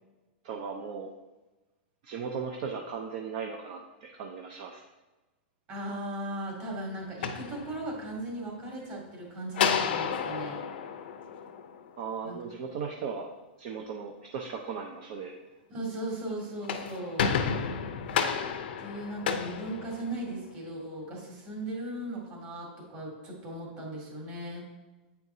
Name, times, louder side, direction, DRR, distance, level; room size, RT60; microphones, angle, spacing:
voice 1, 0.4-1.1 2.0-4.8 12.0-13.3 13.6-15.4 19.2-19.4, right 6 dB, 50° right, 2 dB, 0.7 m, -37 dB
voice 2, 5.7-10.6 12.2-12.4 15.7-17.3 18.8-24.7, right 1 dB, 35° right, -2 dB, 2.1 m, -37 dB
sound 1, 7.0-8.2 9.5-12.0 16.4-20.5, left 7 dB, 70° left, 0.6 m, -31 dB
8.3 x 4.6 x 2.7 m, 1.1 s
hypercardioid pair, 140°, 6 cm